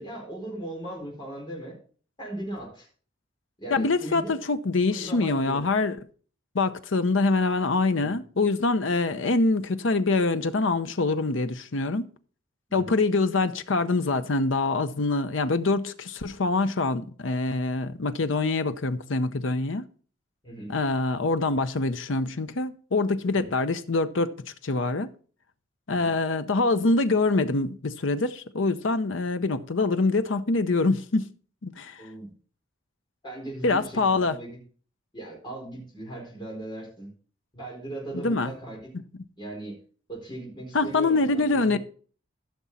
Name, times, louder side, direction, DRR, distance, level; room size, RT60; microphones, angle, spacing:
voice 1, 0.0-1.7 2.2-2.9 3.6-4.4 4.8-5.6 8.0-8.2 12.7-12.9 20.4-20.7 23.3-23.5 25.9-26.2 32.0-32.3 33.2-34.6 35.1-37.1 37.5-38.8 39.4-39.7 40.1-41.8, right 1 dB, 25° left, 4.5 m, -38 dB
voice 2, 3.7-6.0 6.5-12.1 12.7-19.8 20.7-24.3 24.6-25.1 25.9-31.3 31.6-32.0 33.6-34.3 38.1-38.5 40.7-41.8, left 3 dB, 75° left, 0.7 m, -25 dB
14.0 x 6.2 x 4.2 m
head